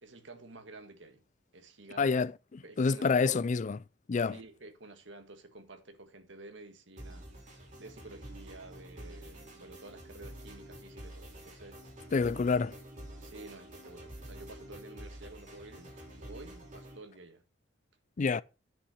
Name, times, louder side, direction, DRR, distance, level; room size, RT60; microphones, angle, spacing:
voice 1, 0.0-1.2 1.5-2.2 2.6-3.5 4.3-11.8 13.2-17.4, right 2 dB, 75° right, 1.8 m, -51 dB
voice 2, 2.0-2.3 2.8-3.8 4.1-4.4 12.1-12.8 18.2-18.4, left 4 dB, 40° left, 0.4 m, -27 dB
sound 1, 7.0-17.0, right 1 dB, 40° right, 4.6 m, -48 dB
10.0 x 5.8 x 5.6 m
head